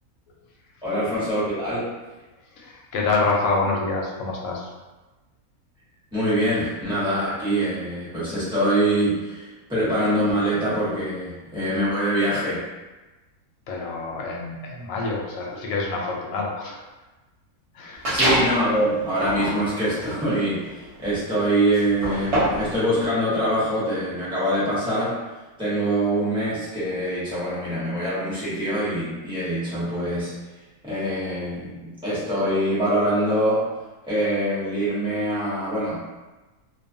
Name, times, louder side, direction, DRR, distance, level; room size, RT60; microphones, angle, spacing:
voice 1, 0.8-1.8 6.1-12.6 18.1-25.2 25.6-30.3 30.8-33.6 34.0-36.0, right 1 dB, 5° right, -12 dB, 0.8 m, -24 dB
voice 2, 2.5-4.7 13.7-16.8 17.7-18.2, left 3 dB, 70° left, -1 dB, 0.9 m, -27 dB
sound 1, 18.0-18.6 19.1-22.7, equal, 35° right, 0.6 m, -26 dB
2.4 x 2.3 x 2.6 m, 1.2 s
omnidirectional pair, 1.6 m